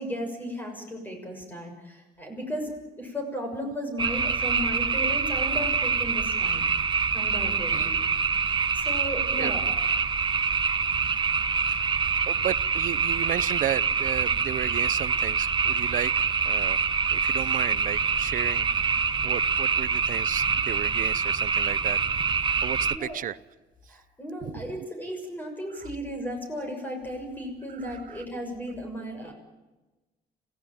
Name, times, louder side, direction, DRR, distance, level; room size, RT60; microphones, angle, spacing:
voice 1, 0.0-2.7 3.0-6.7 7.1-8.0 8.7-9.7 22.9-23.2 23.9-29.3, equal, 10° left, 3 dB, 6.4 m, -35 dB
sound 1, 4.0-23.0, right 5 dB, 25° right, 1.3 m, -25 dB
voice 2, 12.3-16.8 17.1-23.4 24.4-24.5 27.8-28.2, right 11 dB, 55° right, 18 dB, 0.8 m, -34 dB
26.0 x 17.0 x 9.1 m, 1.2 s
cardioid pair, 110°, 17 cm